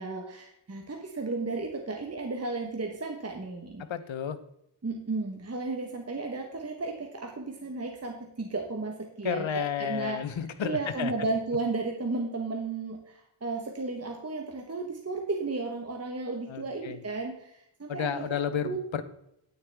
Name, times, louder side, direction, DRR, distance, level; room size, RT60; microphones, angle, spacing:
voice 1, 0.0-3.9 4.8-10.2 10.6-18.8, right 3 dB, 35° right, 2 dB, 1.1 m, -34 dB
voice 2, 3.9-4.4 9.2-11.1 16.5-17.0 17.9-19.0, left 8 dB, 85° left, 12 dB, 0.8 m, -31 dB
9.5 x 9.3 x 3.4 m, 0.77 s
wide cardioid pair, 105°, 45 cm